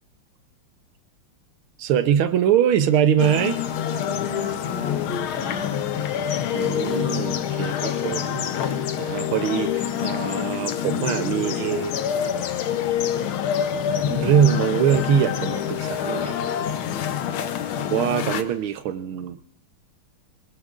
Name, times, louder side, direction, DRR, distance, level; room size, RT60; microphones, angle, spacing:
voice 1, 1.8-3.6 6.5-8.7 9.0-11.9 14.0-16.4 17.9-19.5, right 9 dB, 85° right, 11 dB, 1.7 m, -23 dB
sound 1, 3.2-18.4, left 9 dB, 80° left, 1.7 m, -26 dB
voice 2, 3.9-5.9 17.1-17.4, left 2 dB, 30° left, -1 dB, 2.8 m, -36 dB
24.5 x 18.5 x 2.5 m, 0.73 s
omnidirectional pair, 2.3 m